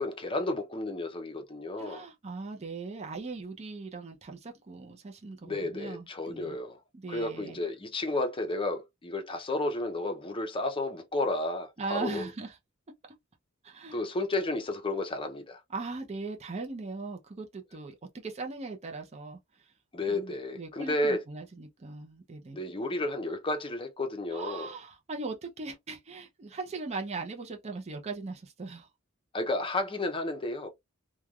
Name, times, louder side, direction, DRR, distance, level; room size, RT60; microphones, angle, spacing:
voice 1, 0.0-2.0 5.4-6.8 7.1-12.3 13.9-15.6 19.9-21.2 22.5-24.7 29.3-30.7, left 2 dB, 25° left, 0.6 m, -32 dB
voice 2, 1.8-6.6 6.9-7.6 11.8-12.6 13.6-14.0 15.7-19.7 20.1-22.6 24.3-28.9, right 3 dB, 30° right, 0.5 m, -39 dB
3.1 x 2.2 x 2.3 m
head